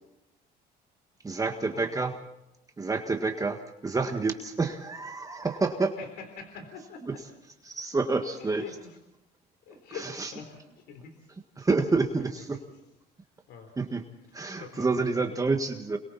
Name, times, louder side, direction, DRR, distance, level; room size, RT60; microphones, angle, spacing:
voice 1, 1.2-2.1 2.8-5.9 7.7-8.6 10.2-10.3 11.6-12.5 13.8-14.0 14.3-16.0, right 3 dB, 20° right, 4 dB, 1.7 m, -28 dB
voice 2, 5.4-7.2 8.4-9.0 9.7-11.3 12.1-12.3 12.7-12.8 13.5-13.8 14.3-15.5, left 6 dB, 80° left, 5 dB, 3.8 m, -45 dB
28.5 x 22.5 x 4.2 m, 0.87 s
cardioid pair, 110°, 17 cm